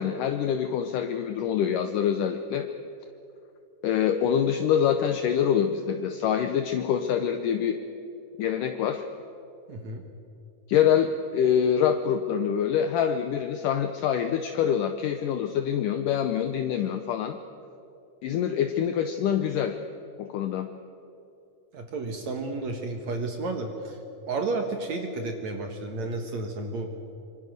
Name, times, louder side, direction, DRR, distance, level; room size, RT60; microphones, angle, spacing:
voice 1, 0.0-2.7 3.8-7.8 8.4-9.0 10.7-17.4 18.2-19.8 20.2-20.7, left 8 dB, 75° left, 7 dB, 2.1 m, -25 dB
voice 2, 9.7-10.0 21.7-24.0 24.3-26.9, right 3 dB, 55° right, 4 dB, 2.4 m, -32 dB
26.0 x 24.5 x 6.6 m, 2.7 s
omnidirectional pair, 4.3 m